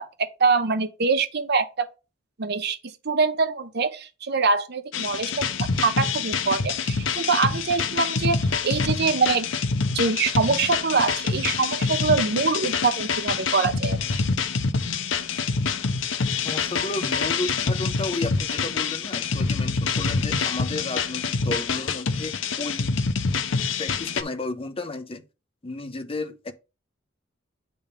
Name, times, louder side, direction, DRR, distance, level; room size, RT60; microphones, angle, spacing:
voice 1, 0.0-1.9 2.4-2.8 3.0-9.5 9.9-14.0, right 4 dB, 55° right, 0.8 m, -24 dB
sound 1, 4.9-24.2, left 5 dB, 70° left, 0.7 m, -26 dB
voice 2, 16.3-23.0 23.8-25.2 25.6-26.5, left 2 dB, 30° left, 0.7 m, -33 dB
8.6 x 3.5 x 5.2 m
head